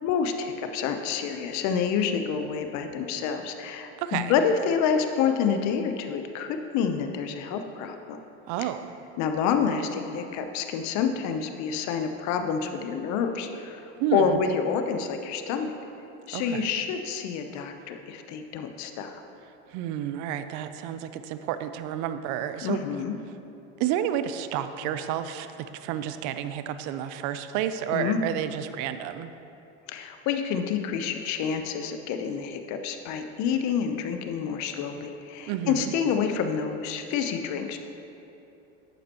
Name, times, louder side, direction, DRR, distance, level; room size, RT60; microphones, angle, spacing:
voice 1, 0.0-8.2 9.2-13.8 14.1-15.7 16.3-19.2 22.6-23.2 27.9-28.2 29.9-37.8, left 6 dB, 60° left, 6 dB, 0.9 m, -28 dB
voice 2, 4.0-4.3 8.5-8.9 14.0-14.4 16.3-16.7 19.7-22.8 23.8-29.3 35.5-35.9, right 10 dB, 60° right, 10 dB, 0.6 m, -30 dB
11.5 x 8.4 x 3.0 m, 2.9 s
supercardioid pair, 100°, 32 cm